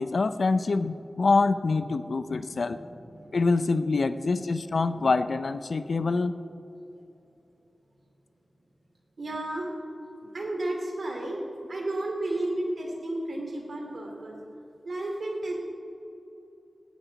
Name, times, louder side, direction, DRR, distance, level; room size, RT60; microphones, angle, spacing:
voice 1, 0.0-2.8 3.3-6.3, left 3 dB, 70° left, 12 dB, 0.6 m, -25 dB
voice 2, 2.3-3.4 4.1-4.6 4.9-5.1 5.9-6.1 9.2-9.7 10.2-11.4 11.7-14.4 14.8-15.6, right 1 dB, 70° right, 1 dB, 2.8 m, -33 dB
17.0 x 11.5 x 4.1 m, 2.9 s
wide cardioid pair, 60°, 0 cm